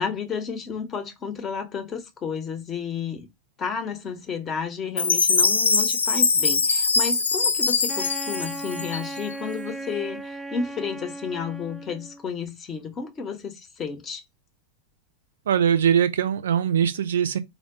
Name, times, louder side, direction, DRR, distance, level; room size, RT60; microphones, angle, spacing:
voice 1, 0.0-3.3 3.6-14.2, left 6 dB, 25° left, 0.8 m, -32 dB
Chime, 5.0-9.3, left 4 dB, 75° left, 0.5 m, -22 dB
Wind instrument woodwind instrument, 7.9-12.3, right 2 dB, 5° right, 0.4 m, -36 dB
voice 2, 15.5-17.4, right 8 dB, 65° right, 0.4 m, -21 dB
3.8 x 2.3 x 3.6 m
figure-of-eight pair, 90°, 0 cm